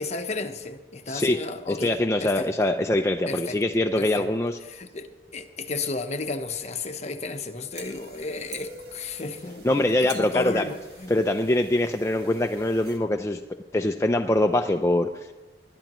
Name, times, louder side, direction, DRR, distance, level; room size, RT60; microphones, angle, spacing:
voice 1, 0.0-1.9 2.2-2.5 3.3-3.6 4.0-4.3 4.7-11.2, left 3 dB, 40° left, 7 dB, 1.0 m, -33 dB
voice 2, 1.1-1.4 1.7-4.6 9.6-10.6 11.1-13.4 13.7-15.3, left 1 dB, 15° left, 4 dB, 0.5 m, -23 dB
sound 1, 7.7-13.0, right 3 dB, 65° right, 2.1 m, -46 dB
21.0 x 11.5 x 3.1 m, 1.2 s
head